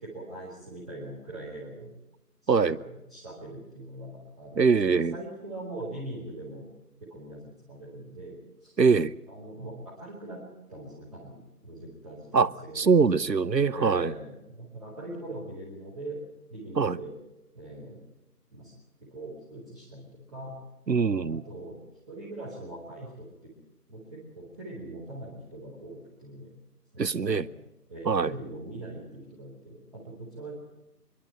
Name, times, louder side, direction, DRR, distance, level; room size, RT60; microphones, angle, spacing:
voice 1, 0.0-1.9 2.4-6.6 7.1-8.7 9.3-10.4 10.7-12.9 13.2-13.3 13.7-16.2 16.5-17.1 17.5-18.0 18.5-18.7 19.0-20.6 21.2-21.8 22.1-23.5 23.9-26.5 26.9-27.5 27.9-30.6, right 1 dB, ahead, 2.4 m, -42 dB
voice 2, 4.6-5.2 8.8-9.1 12.3-12.5 12.8-14.1 16.8-17.0 20.9-21.4 27.0-27.5 28.1-28.3, right 5 dB, 90° right, 0.9 m, -23 dB
26.0 x 11.5 x 8.9 m
figure-of-eight pair, 165°, 49 cm